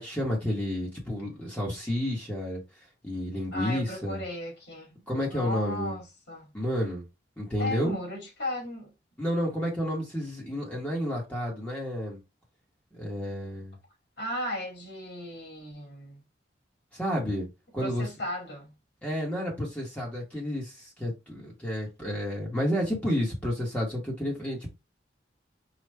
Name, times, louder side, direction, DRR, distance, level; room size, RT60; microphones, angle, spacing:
voice 1, 0.0-2.6 3.0-4.2 5.1-6.0 6.5-7.0 7.4-8.0 9.2-12.2 12.9-13.8 16.9-17.5 17.7-18.1 19.0-24.7, equal, 10° left, 1.2 m, -30 dB
voice 2, 3.5-5.1 5.3-6.5 7.6-8.9 14.2-16.2 17.8-18.7, left 1 dB, 75° left, 2.8 m, -36 dB
4.9 x 2.4 x 3.3 m
head